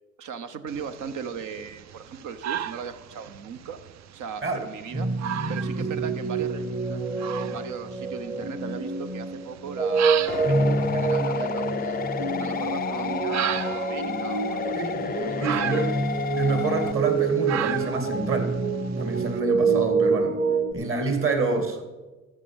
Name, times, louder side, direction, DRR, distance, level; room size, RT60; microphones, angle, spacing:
voice 1, 0.2-3.8 4.1-5.1 5.5-12.0 12.4-14.9 15.2-15.8, right 6 dB, 80° right, 10 dB, 1.0 m, -38 dB
sound 1, 0.7-19.4, right 10 dB, 65° right, 0.6 m, -36 dB
sound 2, 4.9-20.7, right 4 dB, 25° right, 0.9 m, -27 dB
sound 3, 10.3-16.9, left 7 dB, 30° left, 0.4 m, -31 dB
voice 2, 14.7-16.0 16.4-18.5 19.0-20.4 20.7-21.8, right 3 dB, 45° right, 7 dB, 2.2 m, -27 dB
13.0 x 5.1 x 8.7 m, 1.2 s
cardioid pair, 90°, 30 cm